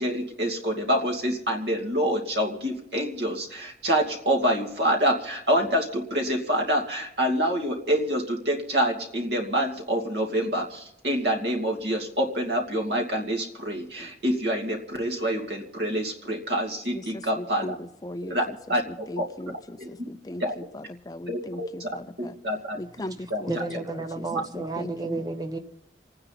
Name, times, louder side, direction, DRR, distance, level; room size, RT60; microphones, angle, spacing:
voice 1, 0.0-17.7 18.3-18.4 18.7-18.8 19.2-19.3 19.8-19.9 20.4-20.5 21.3-21.9 22.2-22.8 23.3-23.4 23.7-23.8 24.3-24.4, equal, 75° right, 2 dB, 2.6 m, -26 dB
voice 2, 16.9-18.6 18.9-22.4 22.7-25.2, left 1 dB, 20° left, 9 dB, 0.5 m, -38 dB
voice 3, 23.5-25.6, right 3 dB, 20° right, 6 dB, 1.0 m, -32 dB
29.0 x 9.8 x 4.1 m, 0.81 s
head